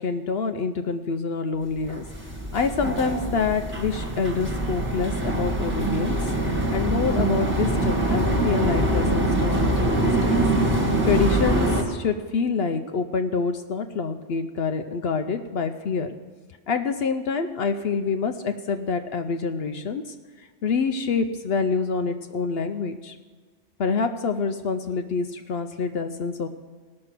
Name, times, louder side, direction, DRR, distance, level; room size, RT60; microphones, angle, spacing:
voice 1, 0.0-2.0 2.5-6.2 6.7-10.4 11.0-16.1 16.7-23.2 23.8-26.5, left 5 dB, 60° left, 7 dB, 0.7 m, -26 dB
sound 1, 1.8-11.8, right 1 dB, 10° right, 1.4 m, -24 dB
18.0 x 6.5 x 5.9 m, 1.5 s
omnidirectional pair, 1.3 m